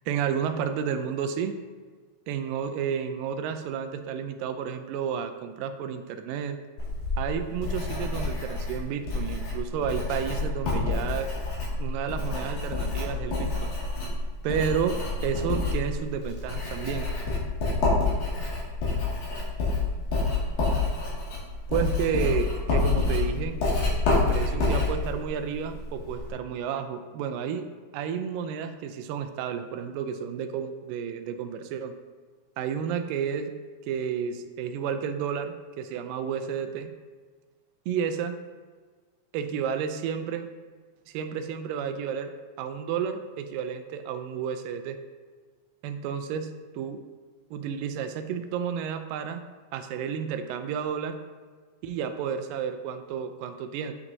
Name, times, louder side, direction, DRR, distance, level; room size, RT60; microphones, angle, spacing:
voice 1, 0.1-1.6 2.3-6.6 7.2-11.3 11.8-13.7 14.4-15.0 15.2-17.1 21.7-23.6 24.1-27.7 27.9-31.9 32.6-33.5 33.9-36.9 37.9-38.4 39.3-40.5 41.1-42.3 42.6-45.0 45.8-47.0 47.5-49.4 49.7-51.2 51.8-53.9, right 7 dB, 85° right, 8 dB, 2.2 m, -31 dB
Writing, 6.8-26.3, left 3 dB, 80° left, 3.8 m, -28 dB
9.4 x 5.9 x 2.7 m, 1.5 s
omnidirectional pair, 4.0 m